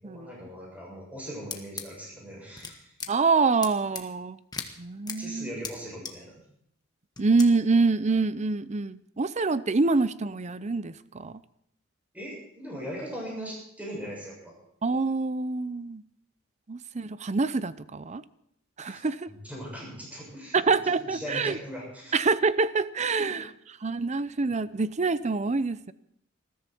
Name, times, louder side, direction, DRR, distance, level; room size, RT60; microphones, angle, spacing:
voice 1, 0.0-2.9 5.1-6.4 12.1-14.6 18.8-22.2 23.3-23.4, equal, 10° right, -4 dB, 7.3 m, -40 dB
sound 1, 1.5-1.8 2.6-2.7 3.0-3.1 3.6-4.0 4.5-4.7 5.1-5.2 5.6-5.7 6.1-6.2 7.2-7.5, left 5 dB, 20° left, 1.4 m, -35 dB
voice 2, 3.1-4.4 4.8-5.5 7.2-11.4 14.8-16.0 16.7-18.2 18.8-19.3 20.5-21.6 22.1-23.4 23.8-25.9, right 4 dB, 35° right, 15 dB, 0.6 m, -26 dB
20.5 x 14.5 x 4.5 m, 0.72 s
head